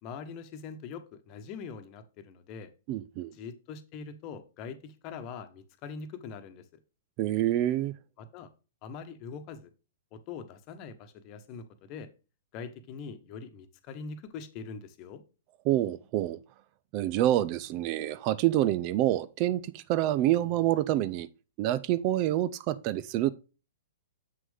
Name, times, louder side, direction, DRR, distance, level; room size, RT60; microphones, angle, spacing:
voice 1, 0.0-2.7 3.3-6.6 8.2-8.5 8.8-9.7 10.1-12.1 12.5-15.2, left 5 dB, 35° left, 1.1 m, -43 dB
voice 2, 2.9-3.3 7.2-7.9 15.7-16.4 16.9-21.3 21.6-23.3, right 13 dB, 35° right, 0.5 m, -27 dB
7.7 x 6.1 x 3.4 m
figure-of-eight pair, 110°, 0 cm